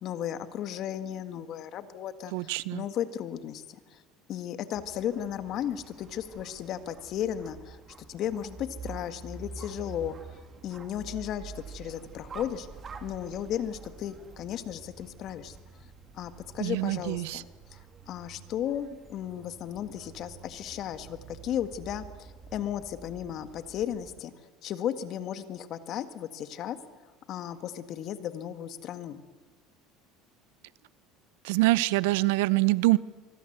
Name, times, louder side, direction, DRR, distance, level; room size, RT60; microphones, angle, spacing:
voice 1, 0.0-3.6 3.9-4.0 4.3-7.8 8.1-10.2 10.6-12.7 13.0-15.6 16.1-17.8 18.1-24.3 24.6-26.8 27.3-29.2, left 10 dB, 50° left, 10 dB, 1.9 m, -35 dB
voice 2, 2.3-2.8 16.6-17.4 31.4-33.0, right 20 dB, 85° right, 19 dB, 0.8 m, -25 dB
sound 1, 4.7-24.2, right 5 dB, 30° right, 2.7 m, -48 dB
24.5 x 24.0 x 8.1 m, 1.3 s
supercardioid pair, 115°, 0 cm